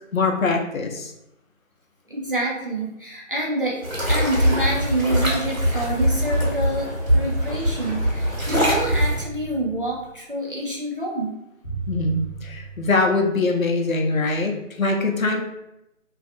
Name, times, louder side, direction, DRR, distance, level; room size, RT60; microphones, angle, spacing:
voice 1, 0.1-1.1 11.9-15.4, left 3 dB, 85° left, 3 dB, 0.6 m, -22 dB
voice 2, 2.1-3.8 4.1-11.3, right 1 dB, 40° right, -4 dB, 0.5 m, -27 dB
sound 1, 3.8-9.2, equal, 90° right, 1.4 m, -22 dB
sound 2, 8.6-10.1 11.6-13.1, right 5 dB, 20° right, 0.9 m, -35 dB
2.6 x 2.3 x 2.4 m, 0.87 s
figure-of-eight pair, 160°, 40 cm